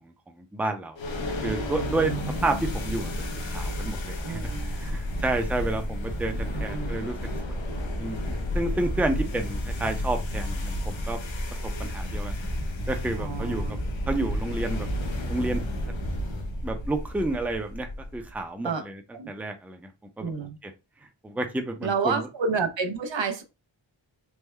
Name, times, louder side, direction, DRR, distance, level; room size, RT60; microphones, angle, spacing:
voice 1, 0.4-1.0 1.4-2.1 2.4-3.1 3.4-4.4 4.8-7.2 7.5-7.6 8.0-11.2 11.8-12.3 12.9-13.6 14.1-14.9 15.3-15.6 16.6-19.0 19.3-19.8 20.2-20.3 20.6-20.7 21.2-22.3, right 2 dB, 5° right, 0.5 m, -30 dB
sound 1, 1.0-18.3, left 1 dB, 75° left, 0.8 m, -31 dB
voice 2, 4.2-5.2 6.5-7.0 13.2-13.8 18.6-18.8 19.1-19.3 20.2-20.6 21.8-23.4, right 5 dB, 75° right, 0.7 m, -30 dB
3.5 x 2.1 x 3.2 m
wide cardioid pair, 70°, 45 cm